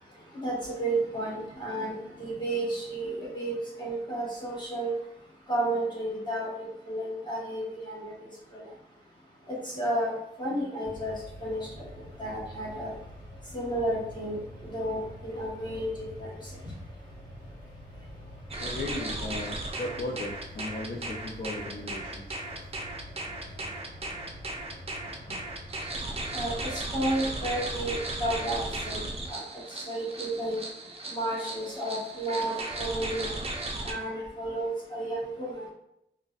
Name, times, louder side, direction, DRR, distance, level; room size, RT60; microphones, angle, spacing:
voice 1, 0.4-4.9 5.5-6.5 6.9-8.1 8.5-8.6 9.7-10.1 10.4-11.1 11.4-11.6 12.2-12.9 13.5-14.4 14.7-15.9 16.2-16.3 26.3-26.5 26.9-29.0 29.3-29.4 29.9-30.6 31.1-33.4 33.8-35.6, right 1 dB, 25° left, -5 dB, 1.3 m, -31 dB
sound 1, 10.8-29.0, equal, 75° left, 1.1 m, -46 dB
sound 2, 18.5-33.9, right 2 dB, 35° right, 0.5 m, -36 dB
voice 2, 18.6-22.4 25.3-25.4, left 2 dB, 55° left, -2 dB, 0.5 m, -36 dB
3.7 x 2.1 x 2.5 m, 0.80 s
wide cardioid pair, 85°, 18 cm